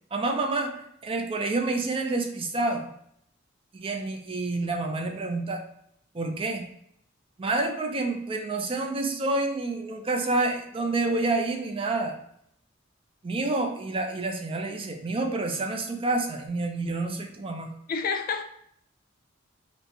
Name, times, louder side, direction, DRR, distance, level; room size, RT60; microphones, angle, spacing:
voice 1, 0.1-0.7 1.0-2.9 3.7-5.6 6.1-6.6 7.4-12.1 13.2-17.7, right 2 dB, 30° right, 4 dB, 0.5 m, -28 dB
voice 2, 17.9-18.4, left 5 dB, 45° left, 6 dB, 0.4 m, -28 dB
5.2 x 2.1 x 3.1 m, 0.69 s
head